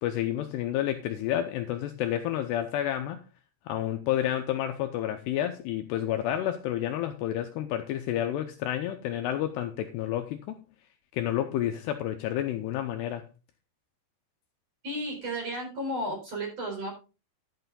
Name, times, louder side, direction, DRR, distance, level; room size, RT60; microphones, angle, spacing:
voice 1, 0.0-3.2 3.7-10.6 11.1-13.3, left 11 dB, 90° left, 2.4 m, -30 dB
voice 2, 14.8-16.9, equal, 35° right, 4.7 m, -33 dB
11.5 x 8.1 x 3.7 m
omnidirectional pair, 5.7 m